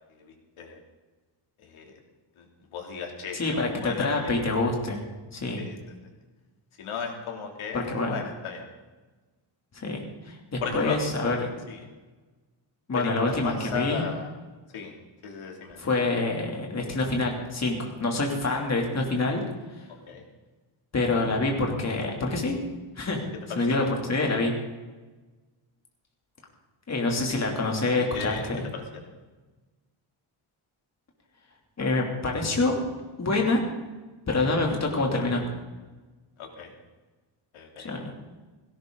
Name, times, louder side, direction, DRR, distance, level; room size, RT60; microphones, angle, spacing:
voice 1, 0.2-0.8 1.6-1.9 2.4-2.5 2.7-4.1 5.6-5.8 6.8-8.7 10.6-11.0 11.7-11.8 12.9-14.3 14.7-14.9 15.2-15.9 20.1-20.2 23.5-23.8 28.1-28.8 34.4-34.5 36.4-36.7 37.5-37.9, left 6 dB, 80° left, 2 dB, 3.2 m, -35 dB
voice 2, 3.3-5.0 5.3-5.6 7.7-8.2 9.7-11.5 12.9-14.0 15.8-19.4 19.7-19.9 20.9-22.6 22.9-23.3 23.5-24.5 26.9-28.6 31.8-32.8 33.2-33.6 34.3-35.4 37.8-38.2, left 2 dB, 30° left, 0 dB, 3.1 m, -26 dB
17.0 x 17.0 x 4.0 m, 1.2 s
cardioid pair, 145°, 49 cm